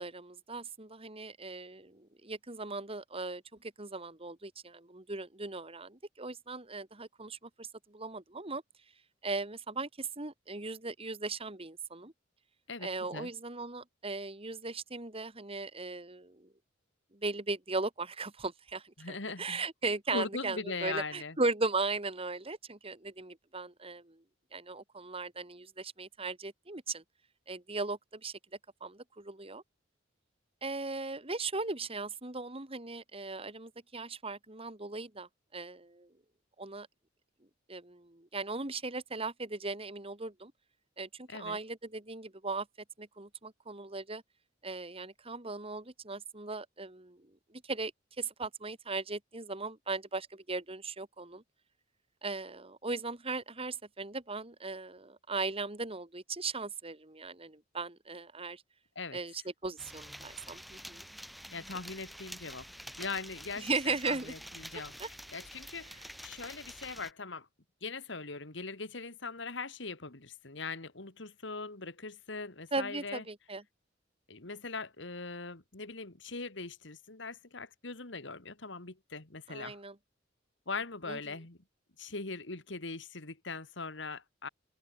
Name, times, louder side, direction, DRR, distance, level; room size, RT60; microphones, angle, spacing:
voice 1, 0.0-8.6 9.2-12.1 12.8-16.5 17.1-24.2 24.5-27.0 27.5-28.4 28.8-29.6 30.6-36.1 36.6-36.9 37.7-40.5 41.0-42.7 43.0-44.2 44.6-47.9 48.2-51.4 52.2-58.6 59.1-61.1 63.6-64.3 64.7-65.1 72.7-73.6 79.5-80.0 81.1-81.2, right 3 dB, 30° right, 2.5 m, -38 dB
voice 2, 12.7-13.3 19.0-19.6 20.1-21.4 41.3-41.6 59.0-59.2 61.5-62.7 63.0-64.9 65.3-65.9 66.2-67.5 67.8-73.2 74.3-79.8 80.7-81.6 82.0-84.5, left 4 dB, 65° left, 2.3 m, -40 dB
sound 1, 59.8-67.1, equal, ahead, 1.0 m, -48 dB
open air
head